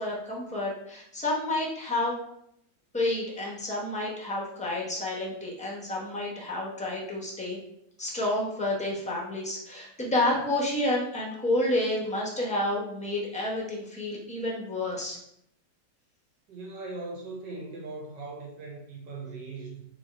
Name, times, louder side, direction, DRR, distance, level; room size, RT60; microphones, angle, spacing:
voice 1, 0.0-2.1 2.9-7.6 8.0-15.2, left 1 dB, 10° left, -4 dB, 0.5 m, -30 dB
voice 2, 16.5-19.9, right 3 dB, 75° right, -1 dB, 1.7 m, -39 dB
3.5 x 3.0 x 4.5 m, 0.74 s
omnidirectional pair, 1.9 m